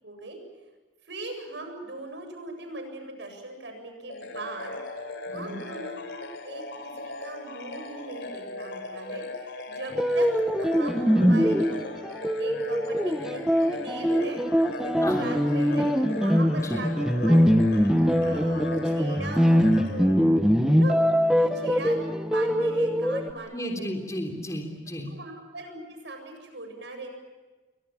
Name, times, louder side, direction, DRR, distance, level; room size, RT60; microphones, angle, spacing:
voice 1, 0.0-0.4 1.0-4.7 5.3-10.3 10.6-11.9 12.4-14.4 14.8-15.9 16.2-20.1 20.6-23.9 25.1-27.1, right 2 dB, 70° right, 5 dB, 7.8 m, -39 dB
sound 1, 4.1-20.8, left 2 dB, 65° left, 3.7 m, -39 dB
voice 2, 5.3-5.6 15.0-15.3 16.6-16.9 23.5-25.1, equal, 15° left, 2 dB, 3.4 m, -34 dB
sound 2, 9.9-23.3, equal, 5° right, 1.1 m, -23 dB
30.0 x 24.0 x 7.4 m, 1.2 s
head